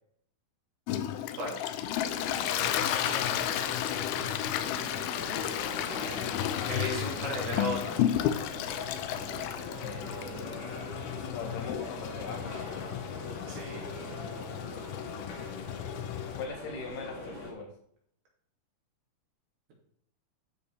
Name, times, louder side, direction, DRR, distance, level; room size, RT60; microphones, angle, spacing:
Toilet flush, 0.9-16.5, left 11 dB, 85° left, 2.6 m, -33 dB
sound 1, 1.9-17.5, left 1 dB, 50° left, 3.6 m, -42 dB
voice 1, 2.2-4.0 9.8-10.3 11.3-12.5 14.7-14.9 16.3-17.7, left 4 dB, 65° left, 2 dB, 3.2 m, -41 dB
voice 2, 5.9-6.3 6.6-8.0 13.5-13.9, right 1 dB, 80° right, -2 dB, 4.8 m, -35 dB
13.0 x 5.4 x 4.9 m, 0.67 s
omnidirectional pair, 4.3 m